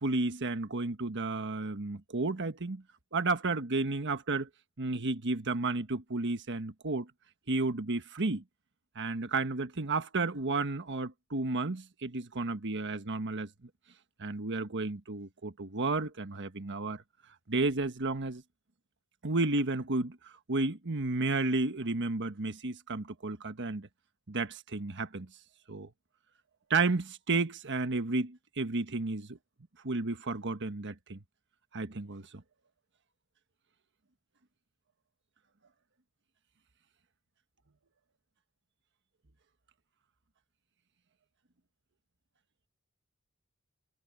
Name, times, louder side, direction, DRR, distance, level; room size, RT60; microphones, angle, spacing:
voice 1, 0.0-2.8 3.1-4.5 4.8-7.1 7.5-8.4 8.9-13.5 14.2-17.0 17.5-18.4 19.2-23.9 24.3-25.3 25.7-25.9 26.7-29.4 29.8-31.2 31.7-32.3, right 3 dB, 55° right, 1.3 m, -32 dB
head